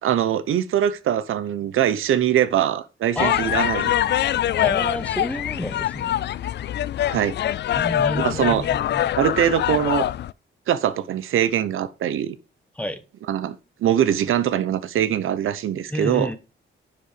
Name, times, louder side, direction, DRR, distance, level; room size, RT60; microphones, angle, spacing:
voice 1, 0.0-4.0 7.1-7.3 8.2-8.7 9.2-10.1 10.7-12.4 13.3-16.3, right 10 dB, 85° right, 0.9 m, -22 dB
voice 2, 3.1-3.7 4.6-6.2 7.7-9.1 12.8-13.0 15.9-16.4, left 1 dB, 5° left, 1.1 m, -30 dB
sound 1, 3.2-10.3, left 11 dB, 60° left, 0.4 m, -24 dB
10.5 x 5.2 x 5.0 m
wide cardioid pair, 140°, 20 cm